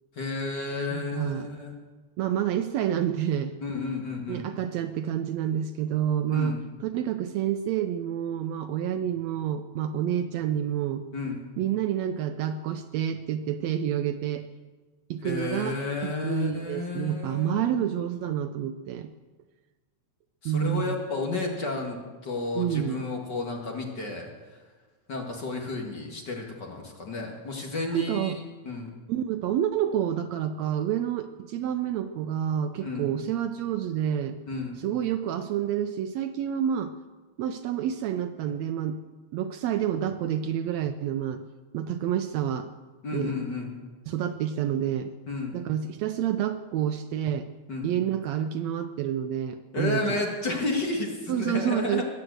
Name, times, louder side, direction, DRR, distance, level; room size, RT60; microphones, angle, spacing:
voice 1, 0.2-1.7 3.6-4.5 6.3-6.6 11.1-11.4 15.2-17.9 20.4-24.6 25.1-28.9 32.8-33.1 34.5-34.7 43.0-43.7 45.3-45.5 47.7-47.9 49.7-52.0, left 3 dB, 40° left, 0 dB, 2.2 m, -32 dB
voice 2, 0.9-1.5 2.2-3.5 4.3-11.0 11.6-14.5 15.1-19.1 20.4-21.0 22.5-23.0 27.9-28.4 29.1-34.4 34.8-36.9 37.4-39.0 39.3-41.4 41.7-42.7 43.1-43.3 44.1-45.1 45.5-47.5 47.8-50.2 51.3-52.0, right 10 dB, 75° right, 9 dB, 1.7 m, -28 dB
20.5 x 7.7 x 7.9 m, 1.3 s
omnidirectional pair, 3.4 m